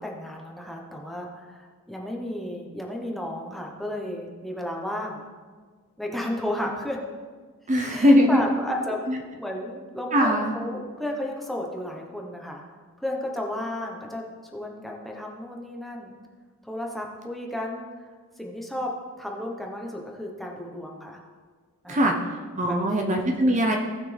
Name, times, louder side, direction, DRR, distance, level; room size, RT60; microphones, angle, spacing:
voice 1, 0.0-5.2 6.0-7.0 7.9-9.0 9.3-12.6 13.0-14.2 14.5-16.1 16.6-17.9 18.4-18.9 19.2-21.2 21.8-22.1 22.6-22.9, left 1 dB, ahead, -1 dB, 1.1 m, -33 dB
voice 2, 7.7-8.4 9.1-9.2 10.1-10.5 21.9-23.8, equal, 35° right, 2 dB, 0.9 m, -21 dB
17.5 x 6.0 x 3.4 m, 1.5 s
head